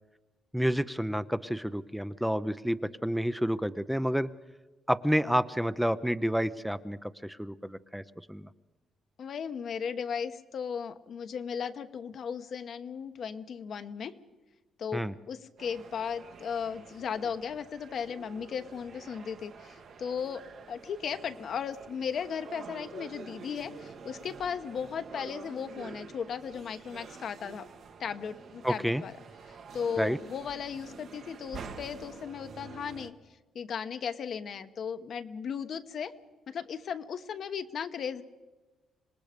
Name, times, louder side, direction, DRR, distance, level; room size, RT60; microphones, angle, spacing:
voice 1, 0.5-4.3 4.9-8.0 8.3-8.5 14.9-15.1 28.6-29.0 30.0-30.2, equal, ahead, 12 dB, 0.6 m, -29 dB
voice 2, 9.2-14.1 14.8-27.7 28.0-29.1 29.5-33.1 33.5-36.1 36.5-38.2, left 7 dB, 60° left, 9 dB, 1.1 m, -36 dB
sound 1, 15.6-33.1, right 5 dB, 65° right, 1.8 m, -48 dB
26.0 x 19.5 x 5.2 m, 1.2 s
cardioid pair, 90°, 0 cm